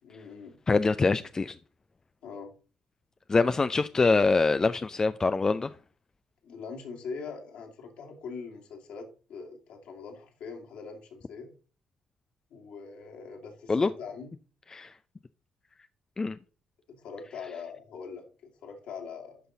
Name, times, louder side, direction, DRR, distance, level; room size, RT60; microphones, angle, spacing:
voice 1, 0.0-0.6 2.2-2.5 6.4-11.5 12.5-14.3 16.9-19.4, left 5 dB, 65° left, 2.3 m, -42 dB
voice 2, 0.7-1.5 3.3-5.7 13.7-13.9 14.7-14.9 16.2-16.4, left 3 dB, 30° left, 0.5 m, -24 dB
11.5 x 5.5 x 3.9 m
hypercardioid pair, 45°, 2 cm